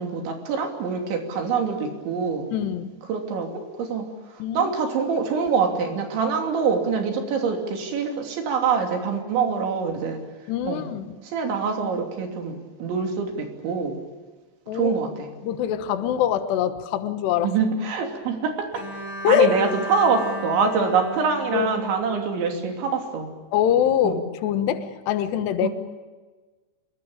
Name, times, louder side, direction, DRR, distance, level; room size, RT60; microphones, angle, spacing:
voice 1, 0.0-2.5 3.1-4.1 4.6-10.2 10.7-10.8 11.3-14.0 14.8-15.3 17.4-18.7 19.3-23.3 24.0-24.2 25.6-25.7, right 5 dB, 85° right, 3 dB, 5.4 m, -25 dB
voice 2, 2.5-3.0 4.4-4.7 10.5-11.2 14.7-14.9 15.4-17.5 19.2-19.5 21.5-21.7 23.5-25.7, left 10 dB, 75° left, 10 dB, 3.3 m, -23 dB
Bowed string instrument, 18.7-22.8, equal, 50° left, 6.1 m, -36 dB
27.5 x 21.5 x 8.8 m, 1.3 s
omnidirectional pair, 5.1 m